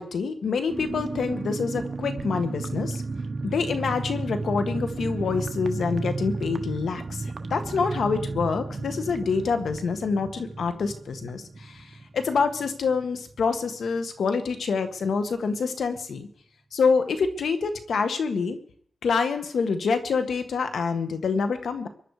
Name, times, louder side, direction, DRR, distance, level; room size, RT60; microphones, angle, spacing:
voice 1, 0.0-3.0 3.4-16.3 16.7-18.6 19.0-21.9, left 5 dB, 85° left, 8 dB, 1.6 m, -26 dB
sound 1, 0.7-13.0 13.3-13.4 13.7-14.0, right 3 dB, 50° right, 1.3 m, -33 dB
23.5 x 11.0 x 5.0 m, 0.64 s
cardioid pair, 75°, 0 cm